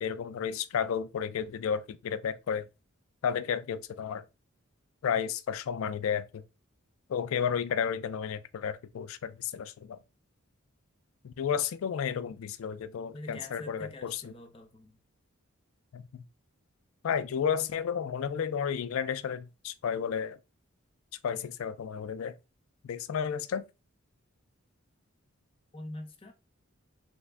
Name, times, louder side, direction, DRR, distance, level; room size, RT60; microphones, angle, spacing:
voice 1, 0.0-2.7 3.2-4.2 5.0-6.4 7.1-10.0 11.2-14.2 15.9-16.2 17.0-20.4 21.2-22.3 22.8-23.6, left 7 dB, 75° left, 0.3 m, -32 dB
voice 2, 13.1-15.0 25.7-26.3, left 1 dB, 25° left, 0.6 m, -44 dB
3.3 x 2.1 x 3.4 m
head